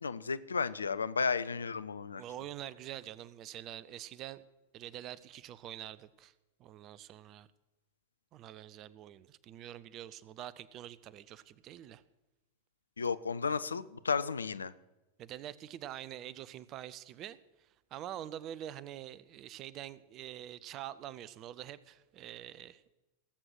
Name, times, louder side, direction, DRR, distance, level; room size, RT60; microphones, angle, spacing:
voice 1, 0.0-2.2 13.0-14.7, left 5 dB, 75° left, 15 dB, 0.5 m, -33 dB
voice 2, 2.2-4.4 4.7-6.3 6.6-7.5 8.3-12.0 15.2-17.4 17.9-22.8, right 12 dB, 35° right, 18 dB, 0.6 m, -45 dB
19.0 x 7.9 x 6.1 m, 1.0 s
figure-of-eight pair, 90°, 0 cm